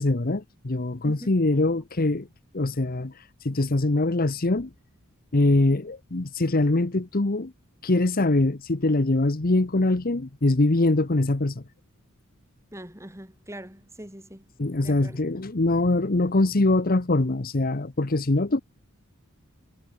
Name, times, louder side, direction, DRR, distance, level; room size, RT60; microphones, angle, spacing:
voice 1, 0.0-2.3 2.5-3.1 3.4-4.7 5.3-7.5 7.8-11.6 14.6-18.6, left 2 dB, 40° left, 1.0 m, -23 dB
voice 2, 12.7-14.5 14.8-15.2, right 1 dB, 15° right, 5.9 m, -42 dB
head